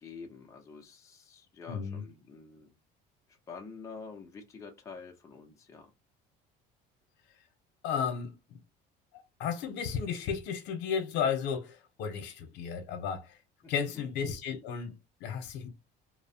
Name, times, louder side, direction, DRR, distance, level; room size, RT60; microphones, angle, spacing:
voice 1, 0.0-2.7 3.5-5.9 13.6-14.0, left 5 dB, 15° left, 0.5 m, -47 dB
voice 2, 1.7-2.0 7.8-8.4 9.4-13.3 13.7-15.7, left 7 dB, 70° left, 0.7 m, -33 dB
2.7 x 2.0 x 2.6 m
cardioid pair, 155°, 18 cm